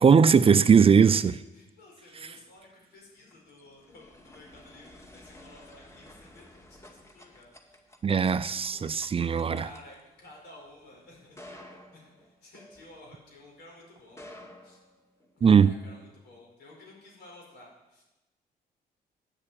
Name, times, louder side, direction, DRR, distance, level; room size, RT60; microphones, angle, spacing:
voice 1, 0.0-1.4 2.2-2.3 8.0-9.7 15.4-15.7, right 6 dB, 35° right, 0.5 m, -20 dB
voice 2, 1.2-7.5 8.7-8.9 9.5-14.8 15.3-18.0, left 2 dB, 90° left, 4.8 m, -53 dB
sound 1, 3.0-13.4 14.0-15.5, left 1 dB, 15° left, 2.1 m, -52 dB
9.8 x 6.7 x 8.8 m
cardioid pair, 80°, 17 cm